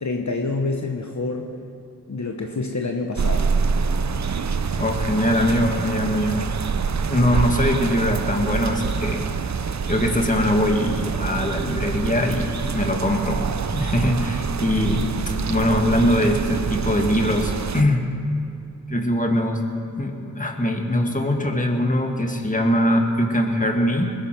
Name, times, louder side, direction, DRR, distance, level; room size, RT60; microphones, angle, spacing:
voice 1, 0.0-1.6 2.1-3.5, left 3 dB, 55° left, 2 dB, 1.1 m, -27 dB
sound 1, 3.2-17.8, right 5 dB, 55° right, 0.6 m, -26 dB
voice 2, 4.8-6.5 7.0-9.3 9.9-13.5 13.7-18.1 18.9-19.6 20.0-24.2, left 1 dB, 25° left, 3 dB, 1.8 m, -22 dB
20.5 x 8.9 x 6.1 m, 2.6 s
cardioid pair, 40°, 34 cm